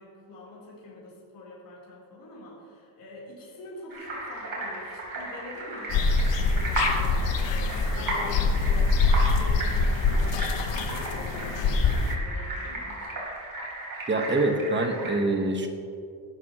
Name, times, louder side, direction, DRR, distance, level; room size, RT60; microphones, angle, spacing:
voice 1, 0.0-7.1 7.4-13.1, left 1 dB, 40° left, -7 dB, 3.8 m, -45 dB
sound 1, 3.9-15.1, right 1 dB, 45° right, 3.7 m, -35 dB
sound 2, 5.9-12.2, left 3 dB, 60° left, 1.1 m, -24 dB
voice 2, 14.1-15.7, right 2 dB, 20° right, 4 dB, 1.2 m, -25 dB
19.0 x 12.5 x 3.0 m, 2.4 s
cardioid pair, 165°, 49 cm